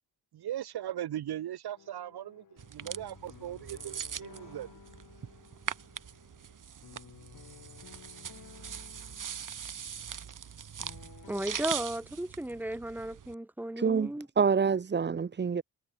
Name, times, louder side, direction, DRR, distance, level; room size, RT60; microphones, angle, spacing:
voice 1, 0.3-2.3 2.8-4.7, right 11 dB, 75° right, 1.1 m, -38 dB
sound 1, 1.7-11.6, left 8 dB, 55° left, 4.3 m, -55 dB
sound 2, 2.6-13.3, right 8 dB, 55° right, 3.9 m, -42 dB
voice 2, 11.3-14.3, right 1 dB, 5° right, 2.1 m, -35 dB
voice 3, 13.8-15.6, right 6 dB, 30° right, 0.9 m, -27 dB
wide cardioid pair, 180°, 38 cm